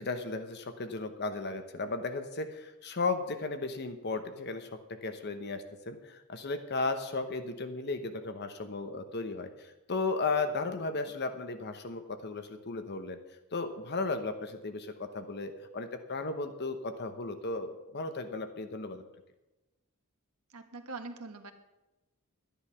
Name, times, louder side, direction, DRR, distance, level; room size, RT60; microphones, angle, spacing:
voice 1, 0.0-4.7 5.0-13.2 13.5-19.0, left 3 dB, 50° left, 8 dB, 1.0 m, -35 dB
voice 2, 20.5-21.5, right 3 dB, 80° right, 6 dB, 1.4 m, -43 dB
12.0 x 10.5 x 5.7 m, 1.0 s
head